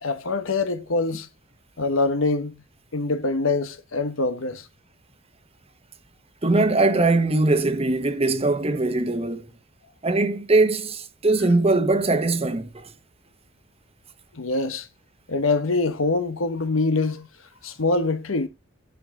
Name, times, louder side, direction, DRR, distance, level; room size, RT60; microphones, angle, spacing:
voice 1, 0.0-1.3 1.8-2.6 2.9-4.7 14.3-14.9 15.3-17.3 17.6-18.5, left 3 dB, 90° left, 1.1 m, -24 dB
voice 2, 6.4-9.5 10.0-12.9, right 2 dB, 30° right, 1.1 m, -21 dB
10.5 x 5.5 x 3.7 m
head